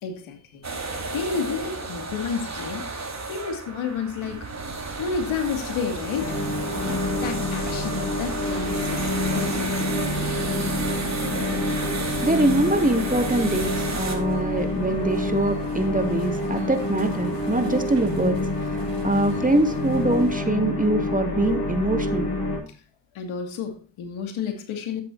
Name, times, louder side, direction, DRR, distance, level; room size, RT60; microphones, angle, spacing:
voice 1, 0.0-0.7 1.1-2.9 3.3-4.5 5.0-6.4 7.2-9.8 22.7-22.8 23.1-25.0, left 6 dB, 85° left, 2.6 m, -31 dB
sound 1, 0.6-14.2, right 3 dB, 35° right, 4.3 m, -32 dB
sound 2, 4.2-20.4, right 2 dB, 65° right, 4.4 m, -40 dB
sound 3, 6.2-22.6, left 2 dB, 55° left, 6.1 m, -28 dB
voice 2, 12.2-22.3, right 2 dB, 15° right, 2.4 m, -24 dB
13.0 x 10.5 x 2.7 m
supercardioid pair, 55°, 47 cm